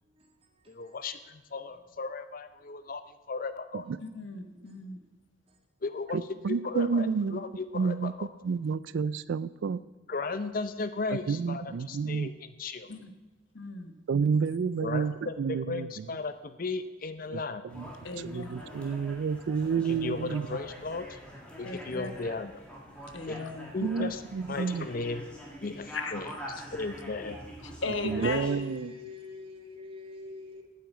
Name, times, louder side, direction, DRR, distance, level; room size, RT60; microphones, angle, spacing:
voice 1, 0.1-1.0 1.7-1.8 4.5-5.1 5.5-5.6 23.0-23.1 27.6-27.8 28.2-30.6, left 3 dB, 30° right, 1.8 m, -44 dB
voice 2, 0.7-3.0 3.3-3.9 5.8-6.2 6.5-8.3 10.1-12.9 14.8-17.6 19.8-21.2 21.6-22.5 23.3-23.4 23.7-24.2 24.5-25.2 25.6-26.3 26.7-27.4, left 3 dB, 45° left, 0.6 m, -35 dB
voice 3, 4.0-5.0 12.9-13.1 13.5-13.9 14.5-14.6 18.0-18.7 21.6-22.1 23.1-23.7 25.9-26.1 27.6-28.4, left 3 dB, 75° left, 1.1 m, -37 dB
voice 4, 6.1-7.4 7.7-8.1 8.4-9.8 11.1-12.3 14.1-16.0 17.3-17.4 17.7-17.9 18.2-20.6 23.8-24.9 28.0-28.9, right 5 dB, 70° right, 0.3 m, -30 dB
sound 1, 17.7-28.5, equal, 5° left, 2.0 m, -45 dB
9.2 x 8.5 x 8.1 m
head